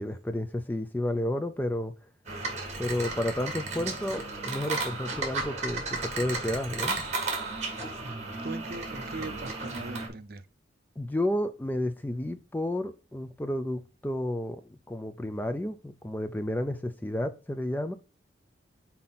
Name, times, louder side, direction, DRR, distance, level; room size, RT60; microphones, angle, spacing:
voice 1, 0.0-1.9 2.8-7.0 11.0-17.9, left 1 dB, 10° left, 0.4 m, -31 dB
sound 1, 2.3-10.1, right 3 dB, 35° right, 1.8 m, -34 dB
voice 2, 7.8-8.1 8.4-10.4, right 2 dB, 50° right, 0.6 m, -40 dB
5.8 x 4.2 x 3.9 m
head